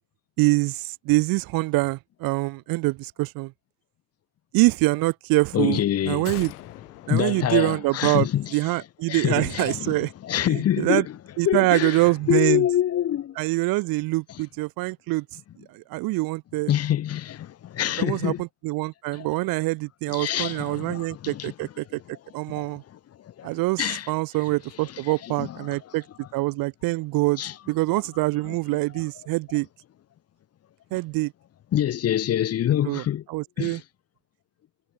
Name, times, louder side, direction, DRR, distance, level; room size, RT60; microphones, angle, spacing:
voice 1, 0.4-3.5 4.5-6.5 7.1-10.1 10.5-11.1 11.4-12.6 13.4-15.3 15.7-16.7 18.0-22.0 22.3-22.8 23.4-26.0 26.3-27.4 27.7-29.7 30.9-31.3 32.9-33.0 33.3-33.8, right 22 dB, 50° right, 1.8 m, -25 dB
voice 2, 5.5-6.3 7.0-8.6 9.1-11.2 11.4-13.4 16.7-18.4 19.1-19.3 20.1-21.8 22.5-23.0 23.2-24.1 24.8-24.9 25.2-25.8 27.4-27.5 28.5-28.6 31.7-33.2 33.6-33.8, left 11 dB, 30° left, 2.4 m, -26 dB
sound 1, 6.2-8.6 8.9-9.0, left 16 dB, 80° left, 7.0 m, -43 dB
supercardioid pair, 120°, 45 cm